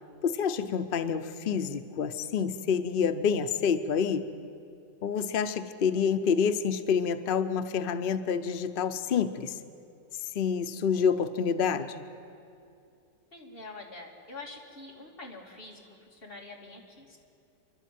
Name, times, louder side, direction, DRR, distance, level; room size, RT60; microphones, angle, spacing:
voice 1, 0.2-4.2 5.0-9.6 10.2-12.0, left 6 dB, 80° left, 10 dB, 0.4 m, -28 dB
voice 2, 13.3-17.2, left 2 dB, 30° left, -1 dB, 2.8 m, -46 dB
28.5 x 12.0 x 9.2 m, 2.5 s
omnidirectional pair, 1.9 m